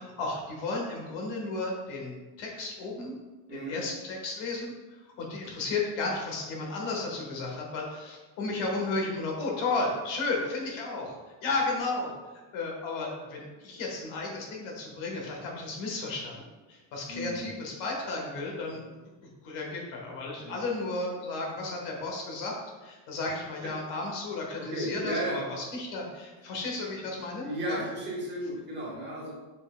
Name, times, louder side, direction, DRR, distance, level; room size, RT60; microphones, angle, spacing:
voice 1, 0.0-3.1 3.5-12.1 12.5-16.4 16.7-18.9 19.4-22.6 22.8-27.8, left 3 dB, 80° left, -1 dB, 1.4 m, -33 dB
voice 2, 17.1-17.5 18.7-18.8 20.4-20.6 23.6-23.7 24.6-25.4 27.4-29.3, right 1 dB, 25° right, -6 dB, 1.4 m, -34 dB
5.3 x 4.5 x 2.2 m, 1.2 s
cardioid pair, 160°, 45 cm